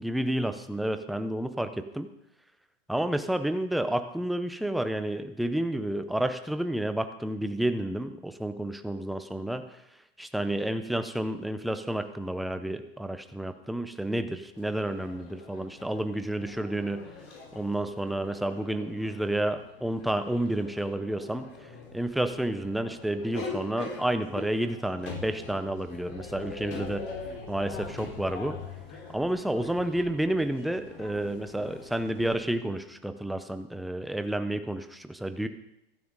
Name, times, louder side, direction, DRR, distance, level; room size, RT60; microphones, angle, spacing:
voice 1, 0.0-2.1 2.9-9.7 10.2-17.0 17.5-21.5 21.9-27.0 27.5-28.6 29.1-35.5, right 1 dB, ahead, 9 dB, 0.4 m, -30 dB
sound 1, 14.5-32.3, left 4 dB, 35° left, 4.2 m, -43 dB
16.0 x 13.0 x 3.9 m, 0.81 s
supercardioid pair, 145°, 30 cm